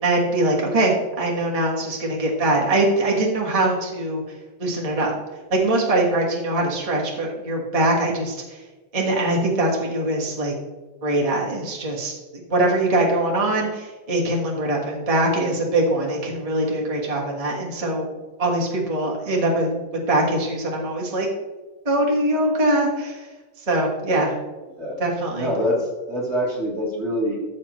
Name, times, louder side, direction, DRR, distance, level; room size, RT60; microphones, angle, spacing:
voice 1, 0.0-4.2 4.6-5.1 5.5-8.6 8.9-10.5 11.0-12.1 12.5-18.1 18.4-19.8 20.1-21.3 21.8-23.2 23.7-24.3 25.0-25.5, right 1 dB, 20° right, -2 dB, 1.4 m, -22 dB
voice 2, 24.7-25.0 25.3-27.4, equal, 35° right, -2 dB, 1.6 m, -25 dB
13.5 x 6.4 x 3.1 m, 1.3 s
omnidirectional pair, 2.1 m